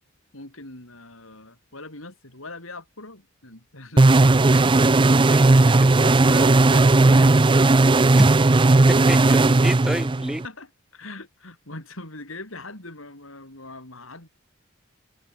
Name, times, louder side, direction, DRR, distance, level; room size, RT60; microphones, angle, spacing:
voice 1, 0.3-4.9 5.5-7.4 10.4-14.3, left 2 dB, 70° left, 7.9 m, -41 dB
sound 1, 4.0-10.5, right 2 dB, 25° right, 0.5 m, -16 dB
voice 2, 9.1-10.4, equal, ahead, 2.7 m, -28 dB
open air
head